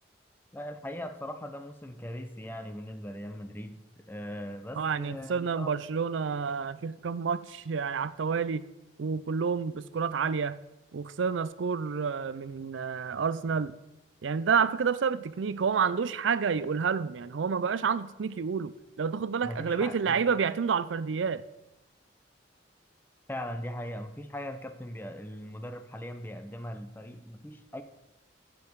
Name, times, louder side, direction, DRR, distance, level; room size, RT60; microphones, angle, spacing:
voice 1, 0.5-3.8 4.1-5.7 19.4-20.2 23.3-27.8, left 1 dB, 10° left, 8 dB, 0.6 m, -40 dB
voice 2, 4.8-8.6 9.0-10.6 10.9-13.8 14.2-21.4, right 6 dB, 85° right, 16 dB, 0.5 m, -29 dB
15.0 x 5.3 x 4.6 m, 0.97 s
head